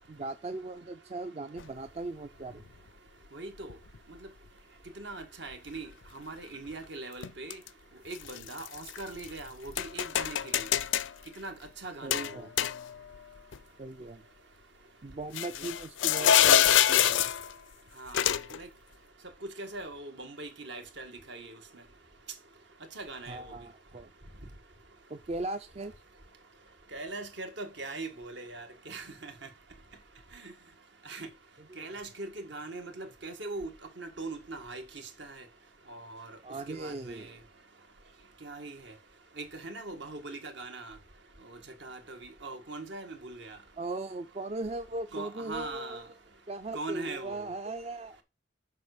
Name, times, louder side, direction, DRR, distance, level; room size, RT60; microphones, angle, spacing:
voice 1, 0.1-2.6 12.0-12.5 13.8-14.2 15.0-17.3 23.3-24.1 25.1-25.9 31.7-31.8 36.4-37.3 43.8-46.1 46.5-48.2, right 2 dB, 35° right, 0.4 m, -38 dB
sound 1, 1.6-1.7 2.7-2.8 3.7-4.0 7.2-7.7 8.1-9.3 9.8-11.1 12.1-13.2 13.5-13.6 15.3-17.5 18.1-18.6, left 10 dB, 80° left, 0.5 m, -26 dB
voice 2, 3.3-3.7 5.0-5.9 6.1-7.6 8.1-10.7 11.4-11.5 11.8-12.5 15.6-15.7 18.0-18.7 19.6-21.6 23.0-23.5 26.9-29.3 30.4-30.5 31.1-31.3 31.8-33.7 34.0-34.8 35.2-35.4 35.9-36.3 36.7-37.3 38.4-38.9 39.4-41.0 41.5-43.6 45.1-46.0 46.7-47.4, right 2 dB, 65° right, 1.8 m, -41 dB
7.5 x 5.3 x 5.0 m
head